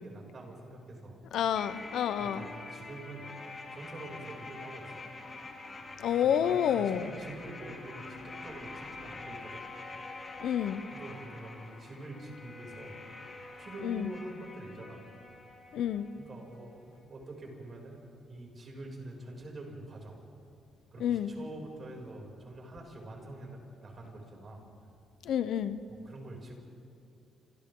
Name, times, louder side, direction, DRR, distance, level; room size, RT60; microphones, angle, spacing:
voice 1, 0.0-1.2 1.9-3.3 3.7-5.1 6.2-9.6 10.9-13.1 13.6-15.0 16.1-18.0 18.3-20.2 20.9-24.7 25.9-26.6, right 2 dB, 40° right, 0 dB, 6.8 m, -46 dB
voice 2, 1.3-2.5 6.0-7.1 10.4-10.8 13.8-14.1 15.7-16.1 21.0-21.3 25.2-25.8, left 9 dB, 75° left, 12 dB, 0.9 m, -29 dB
sound 1, 1.5-16.6 16.8-16.9, left 3 dB, 35° left, 4.4 m, -46 dB
29.5 x 27.5 x 3.9 m, 2.5 s
cardioid pair, 90°, 0 cm